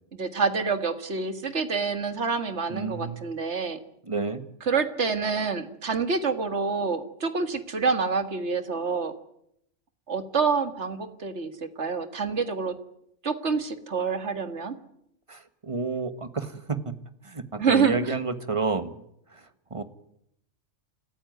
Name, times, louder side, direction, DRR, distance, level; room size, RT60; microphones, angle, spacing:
voice 1, 0.2-3.8 4.7-9.1 10.1-11.5 11.8-12.8 13.2-14.7 17.6-18.1, right 5 dB, 60° right, 10 dB, 2.1 m, -27 dB
voice 2, 2.7-3.2 4.0-4.5 15.3-16.9 17.2-19.0 19.3-19.8, right 3 dB, 25° right, 11 dB, 1.5 m, -30 dB
28.5 x 14.5 x 9.3 m, 0.75 s
omnidirectional pair, 1.3 m